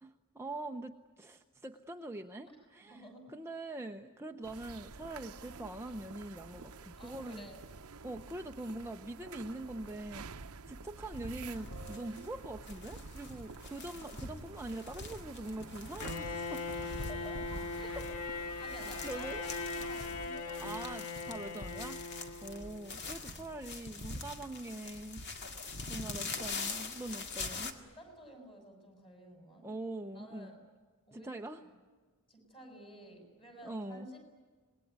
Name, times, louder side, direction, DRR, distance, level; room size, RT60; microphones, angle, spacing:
voice 1, 0.0-2.5 2.7-3.0 3.3-7.5 8.0-16.8 17.9-18.0 19.0-19.4 20.6-22.0 22.4-25.2 25.9-27.7 29.6-30.5 31.1-31.6 33.6-34.1, right 1 dB, 10° right, 4 dB, 0.7 m, -43 dB
voice 2, 2.9-3.2 7.0-7.6 13.8-13.9 16.9-18.1 18.6-20.8 22.0-22.3 25.6-26.2 27.0-29.7 30.1-30.6 31.1-31.7 32.3-34.2, right 1 dB, 25° left, 4 dB, 7.0 m, -53 dB
sound 1, 4.4-20.3, right 4 dB, 75° right, 0.9 m, -50 dB
sound 2, 11.1-27.7, left 3 dB, 50° left, 2.1 m, -44 dB
Bowed string instrument, 16.0-22.9, left 3 dB, 85° left, 1.8 m, -40 dB
26.5 x 20.5 x 9.5 m, 1.4 s
head